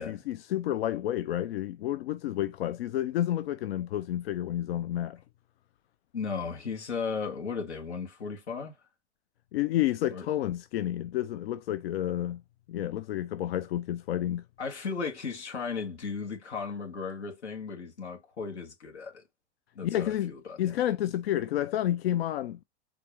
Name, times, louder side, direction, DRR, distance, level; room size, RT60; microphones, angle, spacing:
voice 1, 0.0-5.2 9.5-12.4 12.7-14.4 19.8-20.3 20.6-22.6, left 12 dB, 65° left, 0.5 m, -30 dB
voice 2, 6.1-8.8 10.1-10.3 14.6-19.2 19.8-20.8, left 5 dB, 80° left, 1.8 m, -36 dB
4.5 x 3.6 x 3.1 m
hypercardioid pair, 100°, 33 cm